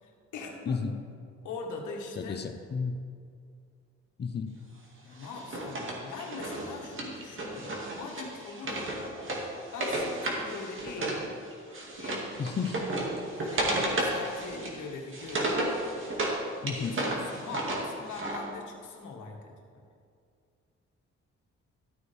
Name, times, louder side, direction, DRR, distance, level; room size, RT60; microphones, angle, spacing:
voice 1, 0.0-0.9 1.4-2.4 5.0-9.0 9.7-11.3 12.0-12.3 13.4-15.6 16.7-19.8, left 4 dB, 80° left, 1 dB, 1.8 m, -42 dB
voice 2, 2.2-3.0 4.2-4.5 12.4-12.8 16.6-16.9, left 5 dB, 35° left, 7 dB, 0.9 m, -32 dB
Wood, 5.2-11.2 11.5-16.4 16.7-18.4, right 1 dB, 40° right, 2.2 m, -33 dB
13.0 x 8.8 x 3.5 m, 2.3 s
cardioid pair, 90°, 30 cm